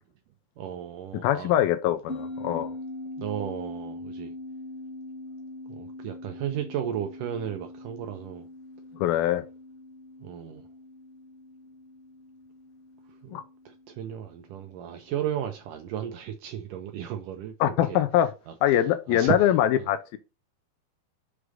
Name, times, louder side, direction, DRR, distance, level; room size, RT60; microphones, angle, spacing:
voice 1, 0.6-1.5 3.2-4.3 5.7-8.5 10.2-10.7 13.2-18.0 18.5-19.9, right 10 dB, 80° right, 1.9 m, -34 dB
voice 2, 1.2-2.7 9.0-9.4 13.3-13.4 17.6-18.3 18.6-20.2, left 11 dB, 80° left, 2.3 m, -23 dB
sound 1, 2.1-14.8, left 2 dB, 25° left, 1.5 m, -42 dB
6.1 x 5.0 x 6.3 m
omnidirectional pair, 4.6 m